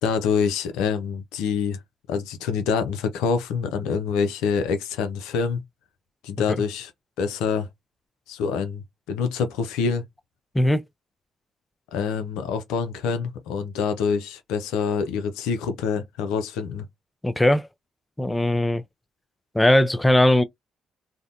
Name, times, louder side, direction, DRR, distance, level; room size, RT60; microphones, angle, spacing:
voice 1, 0.0-1.8 2.1-5.6 6.2-6.9 7.2-7.7 8.3-10.0 11.9-16.8, left 6 dB, 80° left, 0.4 m, -26 dB
voice 2, 17.2-17.7 18.2-18.8 19.5-20.4, left 1 dB, 15° left, 0.4 m, -19 dB
2.6 x 2.1 x 2.5 m
hypercardioid pair, 50°, 0 cm